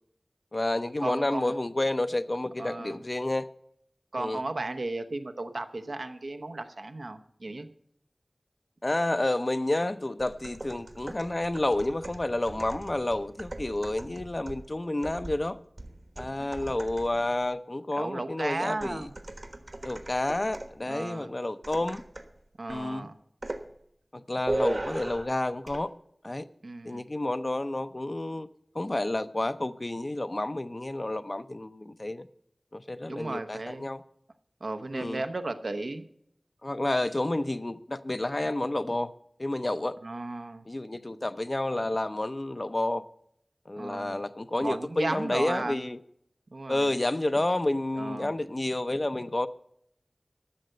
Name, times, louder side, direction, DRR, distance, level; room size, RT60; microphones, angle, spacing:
voice 1, 0.5-3.5 4.2-4.4 8.8-15.6 16.2-19.1 19.8-22.0 22.7-23.1 24.1-25.9 26.2-26.5 26.8-28.5 28.7-32.3 32.7-34.0 34.9-35.2 36.6-39.1 39.4-40.0 40.7-43.0 43.7-46.0 46.7-49.5, left 1 dB, 45° left, 0.6 m, -30 dB
voice 2, 1.0-1.6 2.6-3.0 4.1-7.7 16.4-16.5 17.9-19.1 20.9-21.3 22.6-23.2 26.6-27.1 33.1-33.9 34.6-36.0 40.0-40.6 43.8-44.2 44.6-45.8 46.5-46.9 48.0-48.3, right 2 dB, 90° right, 0.9 m, -35 dB
sound 1, 10.2-17.3 18.8-20.8 21.6-22.4 22.7-22.9 23.4-23.7 24.5-25.4 25.7-25.8, right 1 dB, 60° right, 1.3 m, -38 dB
13.0 x 6.6 x 7.7 m
wide cardioid pair, 45°, 0 cm